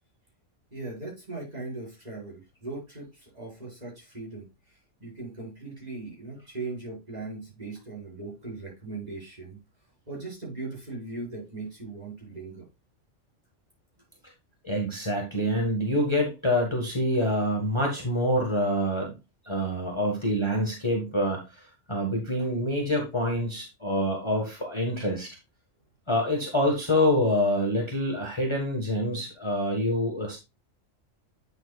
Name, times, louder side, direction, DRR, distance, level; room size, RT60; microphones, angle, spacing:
voice 1, 0.7-9.6 10.1-12.7, right 3 dB, 30° right, -6 dB, 5.4 m, -39 dB
voice 2, 14.6-19.1 19.4-25.3 26.1-30.4, left 1 dB, 20° left, 1 dB, 1.7 m, -26 dB
9.1 x 7.1 x 2.4 m, 0.25 s
omnidirectional pair, 1.3 m